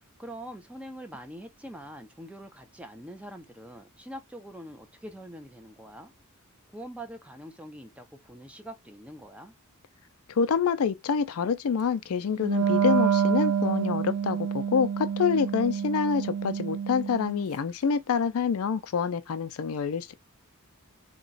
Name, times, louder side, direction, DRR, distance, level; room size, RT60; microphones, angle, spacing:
voice 1, 0.2-6.1 6.7-9.5, right 1 dB, 5° right, 0.5 m, -44 dB
voice 2, 10.3-20.1, left 6 dB, 70° left, 0.4 m, -27 dB
Wind instrument woodwind instrument, 12.4-17.5, right 8 dB, 80° right, 0.3 m, -27 dB
2.9 x 2.2 x 3.9 m
head